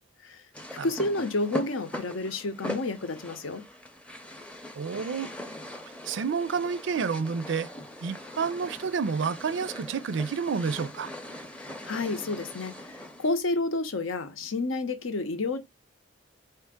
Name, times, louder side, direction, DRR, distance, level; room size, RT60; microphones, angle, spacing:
sound 1, 0.5-13.4, left 1 dB, 5° left, 0.5 m, -41 dB
voice 1, 0.8-3.6 11.9-15.6, left 2 dB, 90° left, 0.8 m, -30 dB
voice 2, 4.8-5.3 6.1-7.7 8.0-11.1, right 5 dB, 65° right, 0.4 m, -29 dB
4.4 x 2.8 x 3.5 m
head